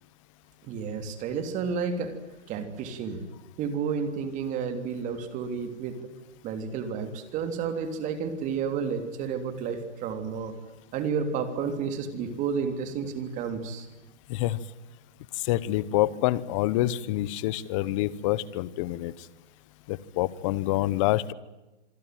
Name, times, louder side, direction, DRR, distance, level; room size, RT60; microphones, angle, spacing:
voice 1, 0.7-2.1 2.5-3.2 3.6-6.0 6.4-10.5 10.9-13.9, right 6 dB, 20° right, 9 dB, 3.2 m, -31 dB
voice 2, 15.4-19.1 19.9-21.3, left 15 dB, 25° left, 20 dB, 1.1 m, -27 dB
26.5 x 24.0 x 9.3 m, 1.1 s
hypercardioid pair, 160°, 35 cm